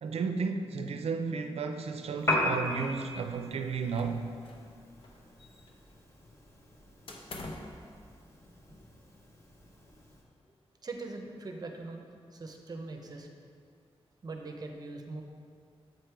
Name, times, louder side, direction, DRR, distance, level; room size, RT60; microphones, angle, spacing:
voice 1, 0.0-4.2, right 5 dB, 75° right, 6 dB, 0.5 m, -33 dB
Piano, 2.2-10.2, left 1 dB, 25° left, 0.9 m, -38 dB
sound 1, 3.9-4.7 5.0-5.9 7.1-7.8, left 2 dB, 55° left, 0.8 m, -45 dB
voice 2, 10.8-12.0 12.3-13.3 14.2-15.2, right 3 dB, 40° right, 3 dB, 0.7 m, -41 dB
7.9 x 5.2 x 4.6 m, 2.2 s
wide cardioid pair, 170°, 10 cm